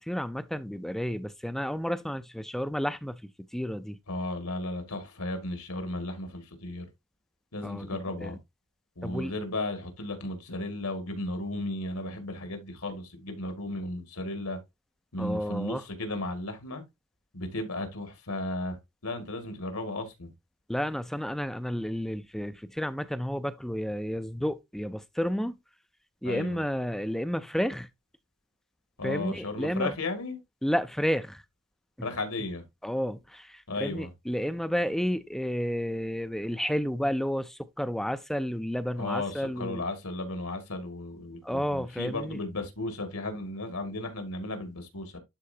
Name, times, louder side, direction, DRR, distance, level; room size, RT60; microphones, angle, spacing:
voice 1, 0.1-4.0 7.6-8.3 9.0-9.3 15.2-15.8 20.7-25.6 26.2-27.9 29.0-29.9 30.6-31.4 32.8-39.8 41.4-42.4, equal, ahead, 0.4 m, -31 dB
voice 2, 4.1-6.9 7.5-8.4 9.0-14.6 15.1-16.8 17.3-20.3 26.2-26.6 29.0-30.4 32.0-32.6 33.7-34.1 39.0-45.2, left 2 dB, 75° left, 2.2 m, -35 dB
11.5 x 4.4 x 2.8 m
head